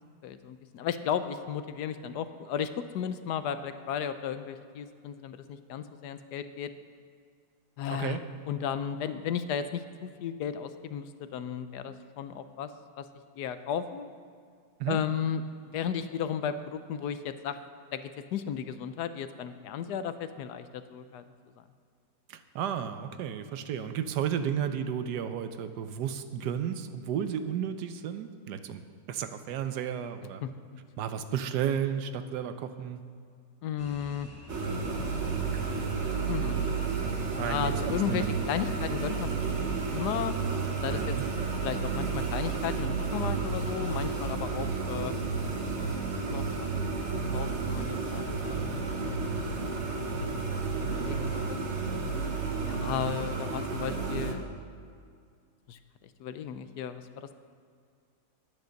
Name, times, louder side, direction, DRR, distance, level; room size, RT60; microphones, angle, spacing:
voice 1, 0.2-6.7 7.8-8.2 8.5-12.7 13.0-13.1 13.4-14.1 14.9-17.6 17.9-21.2 30.4-30.5 33.6-34.3 36.3-36.6 37.4-40.3 40.8-41.2 41.6-45.1 46.3-46.5 47.0-48.8 49.4-49.5 49.9-50.3 50.8-51.6 52.6-54.4 55.7-55.8 56.2-57.4, left 8 dB, 80° left, 11 dB, 1.2 m, -34 dB
voice 2, 7.9-8.2 14.8-15.0 22.3-28.8 29.1-30.4 31.0-33.0 37.4-38.3 40.9-41.3, right 8 dB, 90° right, 10 dB, 1.3 m, -33 dB
sound 1, 33.8-52.9, left 1 dB, 10° left, 0.9 m, -48 dB
sound 2, 34.5-54.3, right 4 dB, 45° right, 1.3 m, -31 dB
10.5 x 9.2 x 6.4 m, 2.2 s
omnidirectional pair, 1.8 m